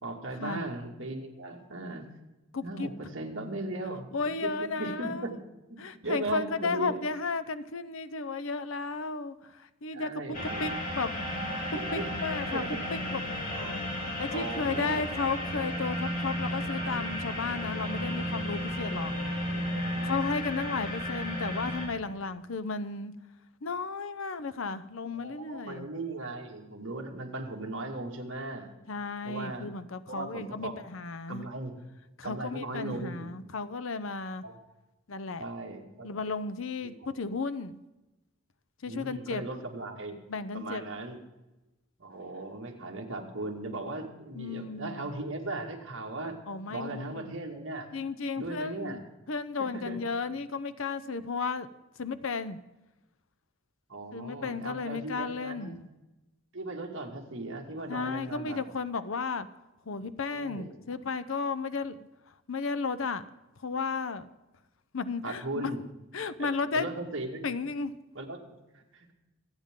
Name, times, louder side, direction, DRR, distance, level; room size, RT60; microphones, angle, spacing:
voice 1, 0.0-2.0 2.6-4.1 4.4-5.3 5.7-6.9 9.9-10.7 11.7-12.1 12.5-13.0 13.5-13.9 14.3-15.0 19.5-20.4 25.1-28.7 29.2-29.7 30.1-30.7 31.3-31.7 32.2-33.3 34.4-34.6 35.4-36.1 36.8-37.2 38.9-40.2 40.5-41.2 42.0-46.4 46.7-47.9 48.4-49.0 49.6-50.0 53.9-55.8 56.5-58.6 60.3-60.7 65.2-65.8 66.4-67.4 68.1-68.4 68.7-69.1, right 2 dB, 60° right, 1 dB, 2.2 m, -38 dB
voice 2, 2.5-2.9 4.1-5.4 5.8-11.2 11.9-12.6 12.9-13.2 14.2-19.1 20.0-23.1 23.6-25.9 28.9-31.5 32.2-34.4 35.1-35.4 36.0-37.8 38.8-39.5 40.3-40.8 44.3-45.1 46.5-47.3 47.9-51.7 52.0-52.6 54.1-55.8 57.9-59.5 59.9-62.0 62.5-63.3 63.6-64.3 64.9-65.7 66.1-66.9 67.4-67.9, left 4 dB, 70° left, 13 dB, 0.7 m, -34 dB
sound 1, 10.3-21.9, equal, 40° left, 3.4 m, -33 dB
26.0 x 9.0 x 3.8 m, 1.0 s
head